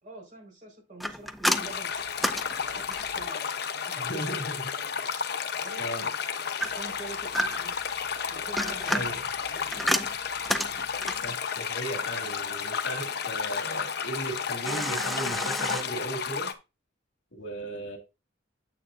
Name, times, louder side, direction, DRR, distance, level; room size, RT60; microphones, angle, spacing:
voice 1, 0.0-1.9 2.5-5.2 5.6-6.5 6.7-7.7 8.1-9.8, right 2 dB, 45° right, 4.6 m, -46 dB
sound 1, 1.0-3.3 6.6-7.8 8.4-11.3 14.6-15.8, equal, ahead, 0.5 m, -30 dB
sound 2, 1.5-16.5, left 6 dB, 60° left, 0.9 m, -32 dB
voice 2, 3.9-4.7 5.8-6.1 8.9-9.2 11.2-16.5 17.3-18.0, equal, 75° left, 2.1 m, -36 dB
9.1 x 8.0 x 2.6 m
head